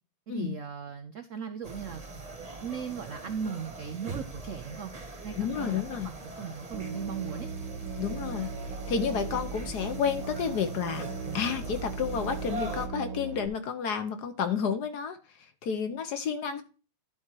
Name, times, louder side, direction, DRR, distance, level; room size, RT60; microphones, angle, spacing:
voice 1, 0.3-2.2 2.6-4.9 5.2-7.5, right 6 dB, 85° right, 7 dB, 0.6 m, -38 dB
sound 1, 1.6-12.9, right 2 dB, 20° right, 1.2 m, -42 dB
voice 2, 5.4-6.1 8.0-8.5 8.9-11.1 11.3-15.2 15.6-16.6, left 7 dB, 60° left, 9 dB, 1.3 m, -30 dB
Musical instrument, 6.7-13.5, right 4 dB, 65° right, 1.6 m, -38 dB
11.5 x 4.4 x 4.6 m, 0.33 s
omnidirectional pair, 2.3 m